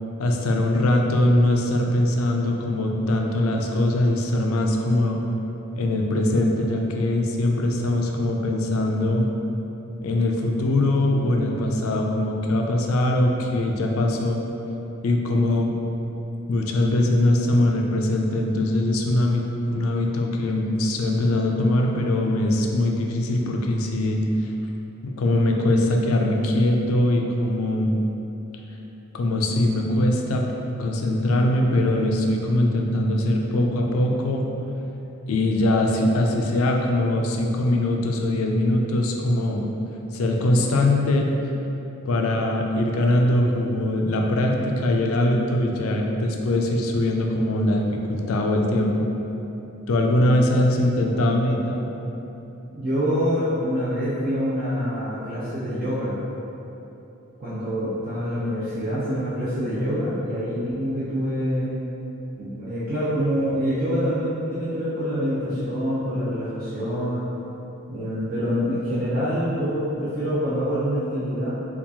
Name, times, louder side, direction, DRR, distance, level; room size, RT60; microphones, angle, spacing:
voice 1, 0.2-5.2 5.7-9.3 10.0-14.4 15.0-15.7 16.5-24.5 25.0-28.0 29.1-30.4 30.8-34.5 35.3-39.6 40.1-41.3 42.0-49.1 49.9-51.9, left 1 dB, 80° left, 1 dB, 0.4 m, -22 dB
voice 2, 50.2-50.6 52.7-56.1 57.4-61.7 62.4-67.2 67.9-71.5, equal, 40° right, -11 dB, 0.6 m, -26 dB
4.3 x 2.4 x 2.7 m, 3.0 s
head